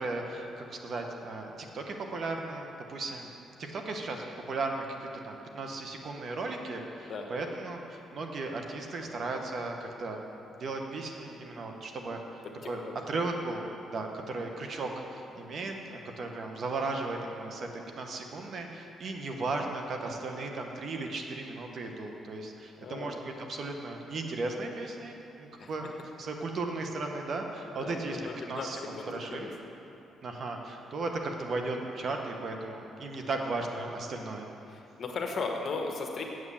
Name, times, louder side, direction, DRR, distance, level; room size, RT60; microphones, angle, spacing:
voice 1, 0.0-3.3 3.6-10.2 10.5-12.8 13.1-25.8 26.2-28.8 29.1-29.5 30.2-34.5, right 3 dB, 55° right, 3 dB, 1.1 m, -36 dB
voice 2, 12.4-12.9 14.8-14.9 22.8-23.2 25.6-25.7 27.8-29.5 34.7-36.2, left 4 dB, 50° left, 2 dB, 1.3 m, -37 dB
7.9 x 7.6 x 7.2 m, 2.9 s
cardioid pair, 90°, 0 cm